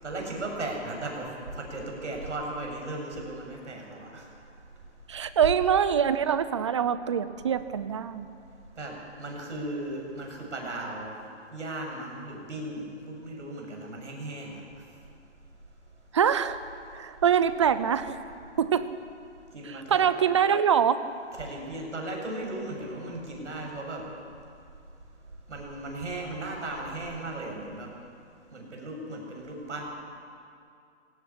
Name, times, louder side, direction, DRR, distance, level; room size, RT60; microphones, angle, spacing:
voice 1, 0.0-4.2 8.8-11.1 11.5-14.6 19.5-20.1 21.4-24.0 25.5-27.9 28.5-29.8, right 2 dB, 75° right, 1 dB, 7.6 m, -36 dB
voice 2, 5.1-8.3 16.1-16.6 16.9-18.2 18.6-18.9 19.9-21.0, right 8 dB, 25° right, 13 dB, 0.6 m, -24 dB
19.0 x 17.5 x 10.0 m, 2.4 s
hypercardioid pair, 160°, 36 cm